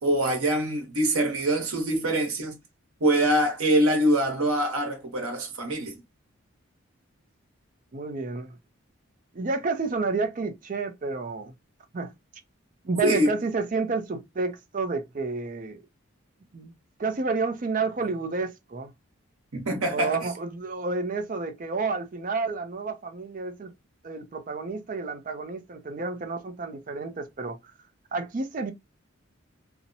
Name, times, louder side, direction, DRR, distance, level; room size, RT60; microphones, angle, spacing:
voice 1, 0.0-2.6 3.0-6.0 13.0-13.3 19.5-20.2, right 1 dB, 85° right, 0.9 m, -24 dB
voice 2, 7.9-8.6 9.3-11.5 11.9-12.1 12.8-15.8 16.5-16.7 17.0-18.9 19.9-23.7 24.0-27.7 28.1-28.7, right 3 dB, 40° right, 0.4 m, -30 dB
2.7 x 2.0 x 2.6 m
head